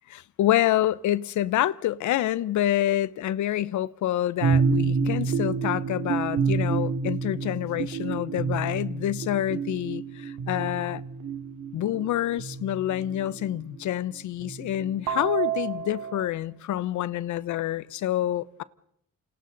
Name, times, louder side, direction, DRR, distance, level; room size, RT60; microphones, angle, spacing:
voice 1, 0.1-11.0 11.7-18.6, left 13 dB, 75° left, 0.8 m, -27 dB
sound 1, 4.4-13.6 14.4-16.3, right 5 dB, 75° right, 2.6 m, -29 dB
29.0 x 27.5 x 4.0 m
cardioid pair, 90°, 30 cm